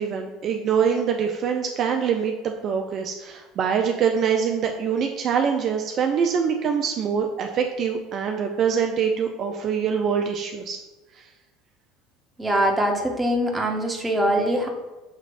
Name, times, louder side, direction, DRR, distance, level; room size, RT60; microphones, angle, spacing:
voice 1, 0.0-10.8 11.2-11.3, right 7 dB, 50° right, 3 dB, 0.4 m, -24 dB
voice 2, 12.4-14.7, equal, 15° right, 1 dB, 0.9 m, -23 dB
6.4 x 3.0 x 2.5 m, 1.1 s
hypercardioid pair, 80°, 0 cm